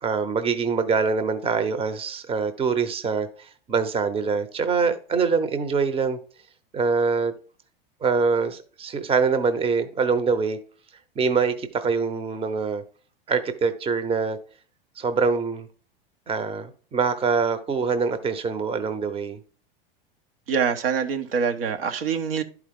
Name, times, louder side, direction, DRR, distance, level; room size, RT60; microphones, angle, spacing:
voice 1, 0.0-6.2 6.7-7.3 8.0-10.6 11.2-12.8 13.3-14.4 15.0-15.7 16.3-19.4, right 5 dB, 20° right, 11 dB, 0.9 m, -24 dB
voice 2, 20.5-22.4, right 6 dB, 75° right, 6 dB, 1.2 m, -25 dB
11.5 x 4.7 x 3.7 m, 0.42 s
hypercardioid pair, 100°, 29 cm